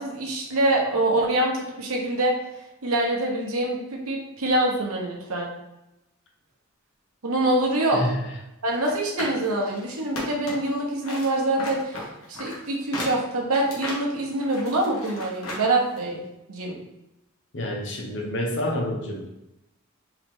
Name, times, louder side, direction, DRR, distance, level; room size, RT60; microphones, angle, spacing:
voice 1, 0.0-2.3 2.8-5.5 7.2-8.0 8.6-16.2 16.5-16.8, right 1 dB, 90° right, -1 dB, 1.0 m, -25 dB
voice 2, 7.9-8.2 17.5-19.3, left 1 dB, 55° left, 1 dB, 0.9 m, -28 dB
sound 1, 8.7-10.7 11.0-15.7 16.0-16.1, left 1 dB, 80° left, 1.3 m, -35 dB
4.6 x 3.0 x 3.7 m, 0.91 s
head